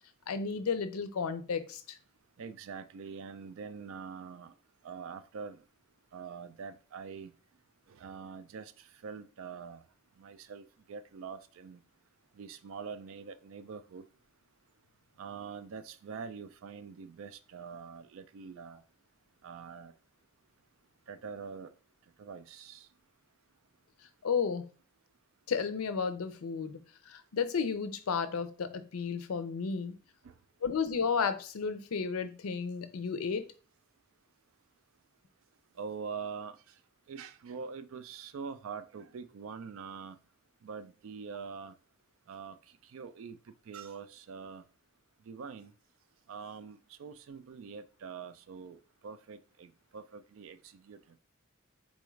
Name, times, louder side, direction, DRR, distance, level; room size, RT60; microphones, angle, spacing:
voice 1, 0.3-2.0 24.2-24.7 25.5-26.8 27.1-29.9 30.6-33.5, left 6 dB, 85° left, 0.5 m, -33 dB
voice 2, 2.4-4.5 4.8-5.6 6.1-7.3 7.9-9.8 10.2-11.8 12.3-14.0 15.2-18.8 19.4-19.9 21.1-21.7 22.2-22.9 30.2-30.3 35.8-36.7 37.1-40.2 40.6-41.8 42.3-43.4 43.7-44.6 45.2-45.7 46.3-51.0, right 5 dB, 70° right, 0.3 m, -44 dB
4.1 x 2.3 x 3.1 m
head